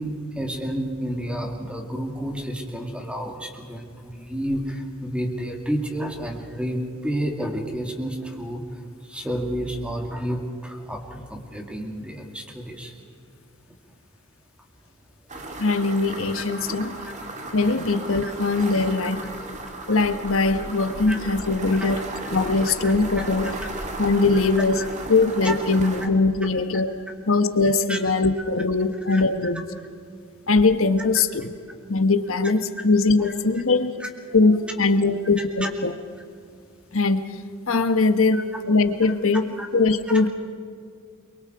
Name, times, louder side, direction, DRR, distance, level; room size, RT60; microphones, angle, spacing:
voice 1, 0.0-12.9 18.2-18.3 21.1-21.2 21.8-21.9 22.8-23.3 24.8-24.9 25.4-25.6 26.7-27.1 27.9-28.0 29.1-29.2 33.2-33.3 34.0-34.6 35.0-35.2 35.6-35.7 38.3-38.4 39.6-39.7, equal, 5° right, 2 dB, 2.7 m, -31 dB
sound 1, 15.3-26.1, right 2 dB, 35° right, 2.3 m, -35 dB
voice 2, 15.6-17.0 17.5-19.4 19.9-22.0 22.3-23.5 24.0-24.8 25.1-27.0 27.3-29.6 30.5-31.5 31.9-33.9 34.3-35.9 36.9-37.2 37.7-38.4 38.7-39.5 39.7-40.3, left 3 dB, 65° left, 9 dB, 1.3 m, -21 dB
29.0 x 23.5 x 4.8 m, 2.2 s
head